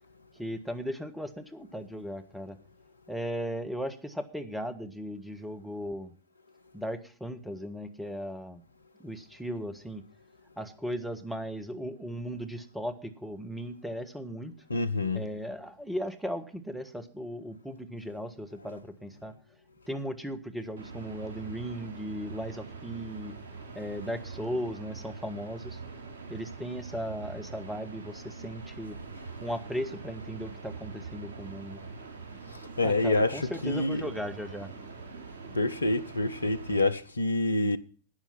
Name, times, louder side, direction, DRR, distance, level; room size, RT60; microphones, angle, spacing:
voice 1, 0.3-2.6 3.1-6.1 6.7-8.6 9.0-10.0 10.6-14.5 15.1-19.3 19.9-23.3 23.7-25.8 26.3-29.0 29.4-31.8 32.8-34.7, equal, 5° right, 1.5 m, -37 dB
voice 2, 14.7-15.2 32.8-33.3 33.6-34.0 35.5-37.8, left 2 dB, 80° left, 0.8 m, -26 dB
sound 1, 20.8-36.9, right 4 dB, 60° right, 3.5 m, -44 dB
12.5 x 9.3 x 5.6 m
figure-of-eight pair, 90°, 0 cm